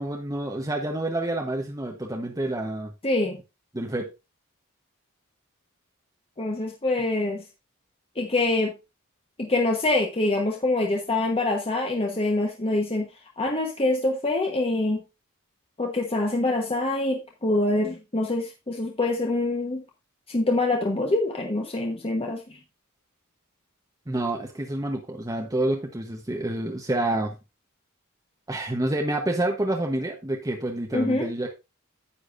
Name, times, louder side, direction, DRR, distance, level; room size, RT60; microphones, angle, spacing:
voice 1, 0.0-2.9 3.7-4.1 24.1-27.3 28.5-31.5, right 1 dB, 15° right, 1 dB, 1.0 m, -28 dB
voice 2, 3.0-3.4 6.4-7.4 8.2-8.7 9.4-13.1 13.4-15.0 15.8-19.8 20.3-22.6 30.9-31.3, left 2 dB, 25° left, 1 dB, 1.2 m, -25 dB
9.9 x 8.5 x 2.6 m, 0.26 s
head